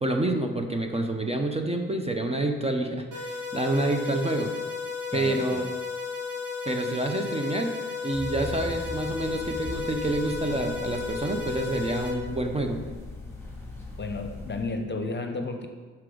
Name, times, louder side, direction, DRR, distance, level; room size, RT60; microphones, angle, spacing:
voice 1, 0.0-4.5 5.1-5.6 6.7-7.7 8.0-12.8, right 2 dB, 20° right, 4 dB, 0.7 m, -28 dB
sound 1, 3.1-12.1, left 5 dB, 65° right, 1.8 m, -34 dB
voice 2, 5.1-5.7 12.4-12.9 14.0-15.7, left 3 dB, 35° left, 5 dB, 0.9 m, -33 dB
sound 2, 8.1-14.8, left 1 dB, 5° left, 1.7 m, -40 dB
5.8 x 5.8 x 5.0 m, 1.5 s
cardioid pair, 75°, 33 cm